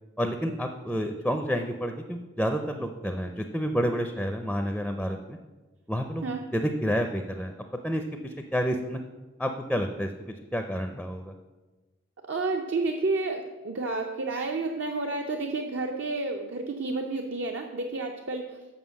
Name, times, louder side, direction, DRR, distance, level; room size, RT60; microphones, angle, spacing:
voice 1, 0.2-5.4 5.9-6.3 6.5-7.5 7.8-9.0 9.4-10.1 10.5-11.3, equal, ahead, 5 dB, 0.4 m, -29 dB
voice 2, 12.3-18.6, right 3 dB, 65° right, 2 dB, 0.6 m, -30 dB
7.4 x 5.8 x 7.0 m, 1.2 s
head